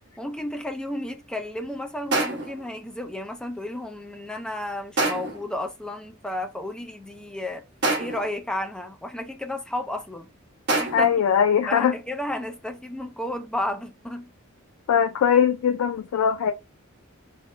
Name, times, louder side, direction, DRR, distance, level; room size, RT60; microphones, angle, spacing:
voice 1, 0.2-7.6 8.0-10.3 10.8-11.2 11.7-14.3, left 1 dB, 5° left, 0.4 m, -32 dB
sound 1, 2.1-2.6 5.0-5.5 7.8-8.3 10.7-11.2, right 2 dB, 55° right, 1.1 m, -26 dB
voice 2, 10.9-11.9 14.9-16.5, left 7 dB, 90° left, 0.3 m, -20 dB
3.6 x 2.1 x 3.2 m
head